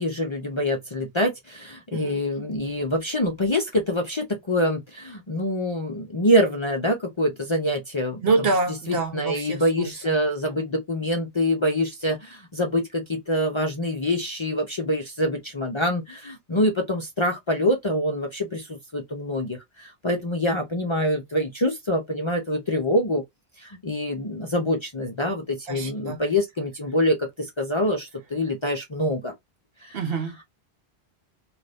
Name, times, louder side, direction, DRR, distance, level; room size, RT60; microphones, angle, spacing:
voice 1, 0.0-8.2 8.9-23.2 23.6-29.3 29.8-30.0, left 1 dB, 35° left, 0.5 m, -25 dB
voice 2, 1.9-2.2 8.2-10.2 25.7-26.2 29.9-30.4, right 3 dB, 65° right, 0.9 m, -26 dB
2.6 x 2.5 x 3.3 m
omnidirectional pair, 1.1 m